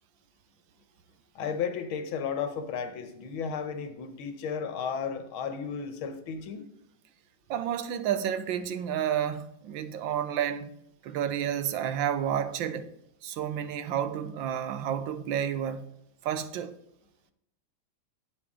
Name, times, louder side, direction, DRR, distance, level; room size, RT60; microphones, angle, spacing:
voice 1, 1.4-6.7, left 6 dB, 90° left, 1.8 m, -34 dB
voice 2, 7.5-10.7 11.0-12.9 13.2-15.8 16.2-16.8, right 9 dB, 75° right, 1.4 m, -30 dB
9.8 x 7.9 x 3.6 m
omnidirectional pair, 2.2 m